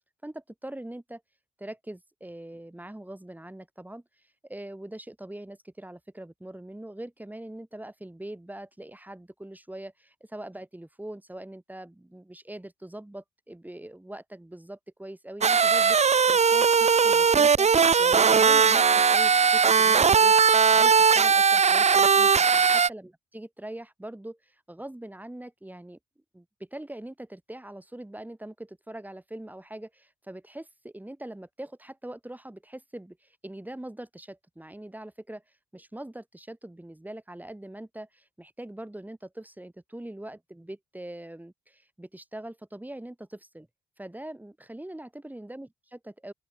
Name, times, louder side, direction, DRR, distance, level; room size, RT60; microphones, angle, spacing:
voice 1, 0.2-1.2 1.6-4.0 4.4-26.0 26.3-35.4 35.7-43.7 44.0-46.3, right 1 dB, 10° right, 6.2 m, -42 dB
sound 1, 15.4-22.9, right 6 dB, 35° right, 1.1 m, -19 dB
open air
cardioid pair, 90°, 20 cm